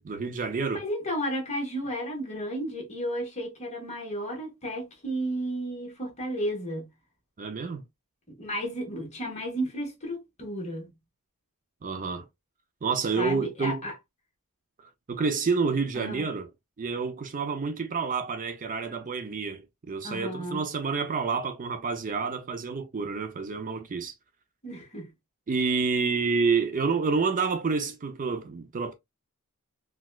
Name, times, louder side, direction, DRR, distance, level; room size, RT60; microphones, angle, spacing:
voice 1, 0.0-0.8 7.4-7.8 11.8-12.3 12.8-13.8 15.1-16.5 16.8-24.1 25.5-28.9, right 4 dB, 35° right, 0.4 m, -28 dB
voice 2, 0.7-6.8 8.4-10.9 13.1-13.9 16.0-16.3 20.0-20.7 24.6-25.1, equal, 30° left, 1.3 m, -33 dB
4.1 x 2.3 x 2.2 m
head